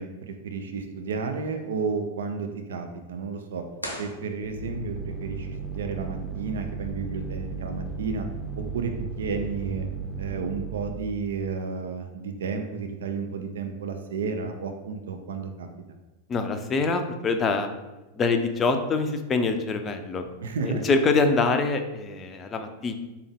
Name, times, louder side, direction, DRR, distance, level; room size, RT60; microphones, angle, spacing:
voice 1, 0.0-3.6 4.0-8.3 8.6-9.9 10.2-15.7 20.4-20.8, right 5 dB, 60° right, 6 dB, 0.4 m, -32 dB
sound 1, 3.8-5.0, equal, 90° left, 0.8 m, -38 dB
sound 2, 4.4-11.0, right 5 dB, 5° right, 0.7 m, -35 dB
voice 2, 16.3-17.7 18.2-20.3 20.6-22.9, left 3 dB, 25° left, 7 dB, 0.4 m, -25 dB
4.4 x 3.4 x 3.5 m, 1.1 s
figure-of-eight pair, 90°, 0 cm